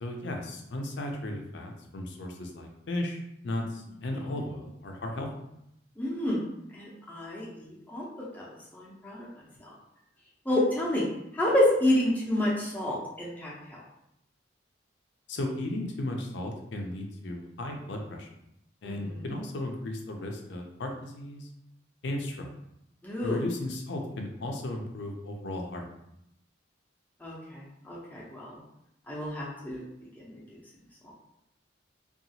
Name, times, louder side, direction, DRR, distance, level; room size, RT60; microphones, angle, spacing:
voice 1, 0.0-5.3 15.3-18.3 18.8-21.5 22.0-22.5 23.2-25.8, left 1 dB, 65° left, 2 dB, 0.5 m, -35 dB
voice 2, 6.0-6.4 6.7-8.1 8.3-9.3 9.6-9.7 10.5-11.1 11.3-13.8 18.8-19.1 23.0-23.4 27.2-28.6 29.1-29.8 30.3-30.4, left 1 dB, 10° left, -5 dB, 0.5 m, -29 dB
2.8 x 2.4 x 2.7 m, 0.80 s
head